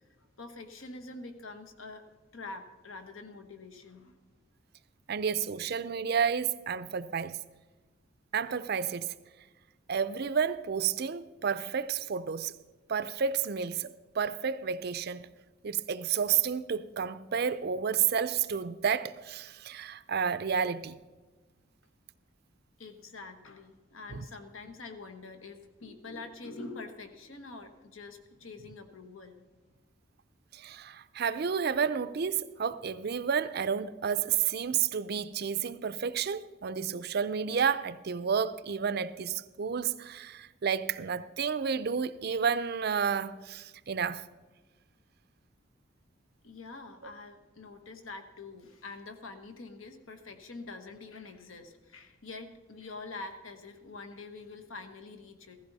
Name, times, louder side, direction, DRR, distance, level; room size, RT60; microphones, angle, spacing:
voice 1, 0.4-2.0 2.3-4.2 22.8-29.4 46.4-55.6, left 3 dB, 80° left, 1.3 m, -45 dB
voice 2, 5.1-7.4 8.3-9.1 9.9-12.5 12.9-15.3 15.6-21.0 24.1-24.2 30.5-44.2, right 7 dB, 50° right, 0.5 m, -31 dB
15.5 x 14.5 x 4.1 m
head